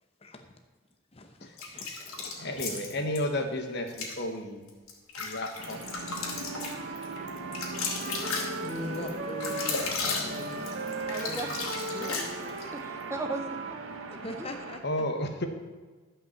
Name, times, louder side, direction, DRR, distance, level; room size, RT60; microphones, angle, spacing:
voice 1, 1.1-2.4 2.7-2.8 8.6-10.7 11.2-11.7 11.9-12.2 14.2-15.0, left 1 dB, 25° left, 4 dB, 0.8 m, -41 dB
sound 1, 1.6-3.2 3.9-4.2 4.7-12.7, left 4 dB, 80° left, 2.4 m, -35 dB
voice 2, 2.2-4.6 5.2-5.8 14.8-15.5, left 1 dB, 50° left, 5 dB, 1.2 m, -32 dB
sound 2, 5.6-14.8, right 2 dB, 70° right, 1.2 m, -40 dB
Wind instrument woodwind instrument, 6.2-10.0 10.3-14.1, right 3 dB, 50° right, 0.8 m, -39 dB
voice 3, 11.1-13.8 14.1-14.5, right 2 dB, 10° right, 6 dB, 0.6 m, -38 dB
12.5 x 5.7 x 7.1 m, 1.3 s
head